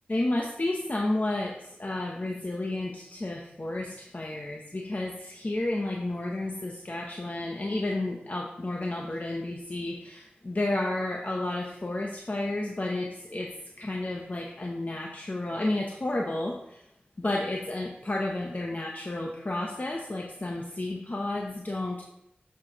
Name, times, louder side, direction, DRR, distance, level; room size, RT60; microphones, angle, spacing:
voice 1, 0.1-13.5 13.8-16.8 17.2-22.0, left 2 dB, 45° left, -1 dB, 0.8 m, -31 dB
7.5 x 5.9 x 2.9 m, 0.80 s
wide cardioid pair, 55°, 4 cm